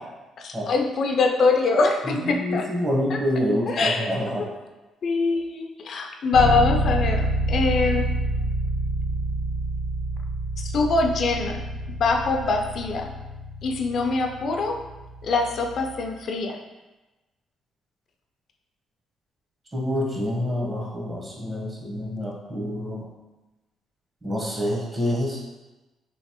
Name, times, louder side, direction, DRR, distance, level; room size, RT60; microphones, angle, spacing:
voice 1, 0.4-2.7 3.1-3.2 3.7-4.1 4.4-4.5 5.0-8.1 10.6-11.6 12.0-13.1 13.6-14.8 15.2-16.6, left 3 dB, 60° left, 3 dB, 0.3 m, -23 dB
voice 2, 2.0-4.5 19.7-23.0 24.2-25.4, left 1 dB, 30° right, -4 dB, 1.0 m, -27 dB
sound 1, 6.3-16.1, right 1 dB, 85° right, 0.6 m, -28 dB
3.1 x 2.7 x 2.9 m, 1.1 s
cardioid pair, 90°, 0 cm